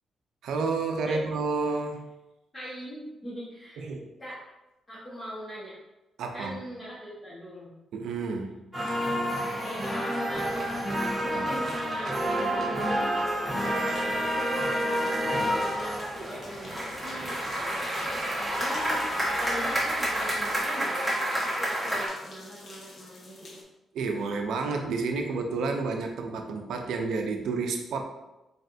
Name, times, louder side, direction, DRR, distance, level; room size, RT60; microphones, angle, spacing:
voice 1, 0.4-2.1 3.8-4.1 6.2-6.6 7.9-8.6 8.9-9.0 11.3-11.5 23.9-28.0, right 4 dB, 80° right, 3 dB, 0.5 m, -30 dB
voice 2, 2.5-3.9 4.2-4.4 4.9-5.7 6.3-7.7 9.6-13.1 13.5-19.0 19.4-23.6, equal, 25° left, -10 dB, 1.3 m, -40 dB
sound 1, 8.7-22.1, equal, ahead, 1.4 m, -29 dB
sound 2, 10.3-20.6, right 1 dB, 45° right, 0.8 m, -47 dB
sound 3, 13.5-23.6, left 2 dB, 45° left, 0.7 m, -49 dB
4.1 x 3.3 x 2.7 m, 0.98 s
cardioid pair, 115°, 0 cm